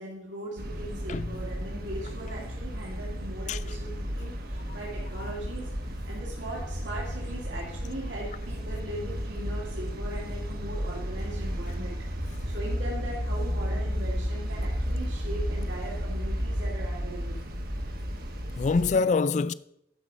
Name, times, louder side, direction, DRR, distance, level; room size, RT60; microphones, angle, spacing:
voice 1, 0.0-5.7 6.1-12.0 12.5-17.4, right 1 dB, 85° right, 2.4 m, -39 dB
sound 1, 0.6-18.9, equal, 50° right, 1.2 m, -33 dB
voice 2, 18.6-19.5, left 4 dB, 40° left, 0.3 m, -26 dB
11.5 x 5.5 x 6.1 m
head